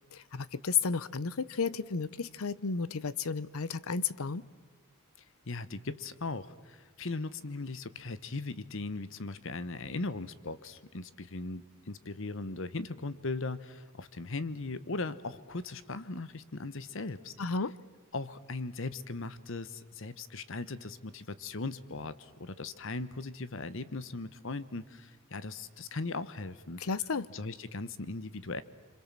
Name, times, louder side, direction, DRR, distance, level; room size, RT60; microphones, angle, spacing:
voice 1, 0.1-4.4 17.4-17.7 26.8-27.3, left 5 dB, 80° left, 19 dB, 0.8 m, -32 dB
voice 2, 5.5-17.3 18.1-26.8 27.3-28.6, left 3 dB, 65° left, 15 dB, 1.1 m, -38 dB
27.0 x 25.5 x 7.5 m, 1.4 s
head